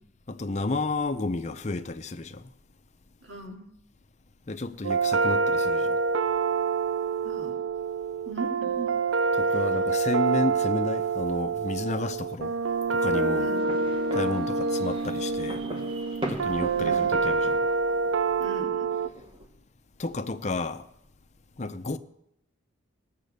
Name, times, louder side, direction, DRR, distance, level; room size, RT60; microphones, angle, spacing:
voice 1, 0.3-2.5 4.5-6.0 9.3-12.5 12.9-13.5 14.1-15.6 16.3-17.6 20.0-20.9 21.6-22.0, left 2 dB, 35° left, 0.6 m, -31 dB
voice 2, 3.2-3.7 7.2-7.5 8.3-8.9 13.3-13.6 16.7-17.1 18.4-18.9, right 3 dB, 65° right, 2.6 m, -38 dB
sound 1, 4.8-19.1, right 4 dB, 80° right, 0.6 m, -26 dB
sound 2, 13.5-19.5, right 1 dB, 25° right, 1.7 m, -40 dB
18.5 x 7.5 x 6.7 m
head